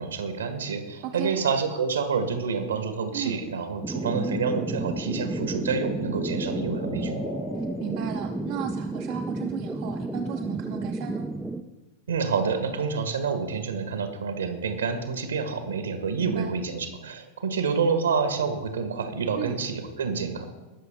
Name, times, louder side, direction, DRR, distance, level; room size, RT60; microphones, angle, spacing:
voice 1, 0.0-7.2 12.1-20.5, right 5 dB, 70° right, 7 dB, 1.5 m, -28 dB
voice 2, 1.0-1.4 3.1-3.4 7.6-11.3 16.2-16.5 19.3-19.6, right 10 dB, 50° right, 3 dB, 0.8 m, -35 dB
sound 1, 2.0-2.1 5.0-8.8, left 2 dB, 75° left, 4.3 m, -39 dB
sound 2, 3.8-11.6, right 2 dB, 5° right, 0.6 m, -32 dB
20.0 x 6.7 x 3.7 m, 1.1 s
figure-of-eight pair, 90°, 0 cm